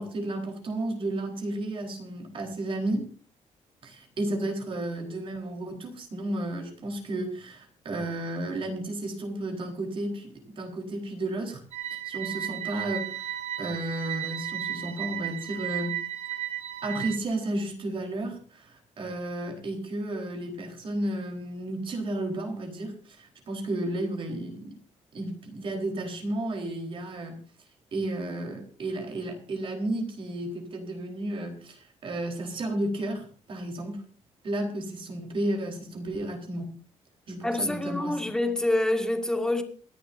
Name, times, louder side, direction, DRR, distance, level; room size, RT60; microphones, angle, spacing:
voice 1, 0.0-3.1 3.8-11.6 12.0-16.0 16.8-24.7 25.1-27.4 27.9-34.0 34.4-36.7 37.3-38.2, right 1 dB, 50° right, 4.0 m, -33 dB
sound 1, 11.7-17.2, right 11 dB, 65° right, 1.1 m, -34 dB
voice 2, 37.4-39.6, left 1 dB, 5° left, 1.9 m, -26 dB
27.5 x 11.0 x 2.6 m
cardioid pair, 150°, 12 cm